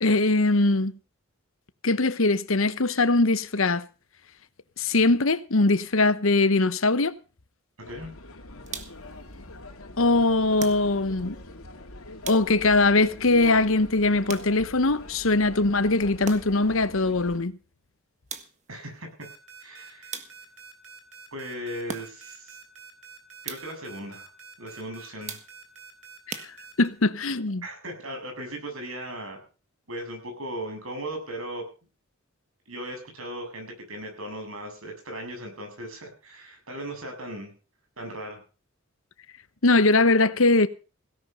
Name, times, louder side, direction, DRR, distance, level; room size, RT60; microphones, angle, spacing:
voice 1, 0.0-0.9 1.8-3.9 4.8-7.1 10.0-11.4 12.3-17.5 26.8-27.6 39.6-40.7, left 2 dB, 70° left, 1.1 m, -21 dB
sound 1, 7.8-17.4, left 2 dB, 85° left, 2.8 m, -43 dB
voice 2, 7.8-8.1 18.7-19.3 19.6-20.1 21.3-22.6 23.4-24.3 24.6-25.4 27.6-29.4 29.9-31.7 32.7-37.5 38.0-38.4, right 1 dB, 80° right, 7.6 m, -37 dB
sound 2, 8.7-9.2 10.6-11.2 12.2-12.8 14.3-14.9 16.2-16.8 18.3-18.8 20.1-20.7 21.9-22.4 23.4-23.9 25.3-25.8 26.3-27.0, right 5 dB, 35° right, 1.6 m, -40 dB
sound 3, 19.2-26.9, right 5 dB, 65° right, 3.7 m, -47 dB
17.0 x 10.5 x 5.6 m
head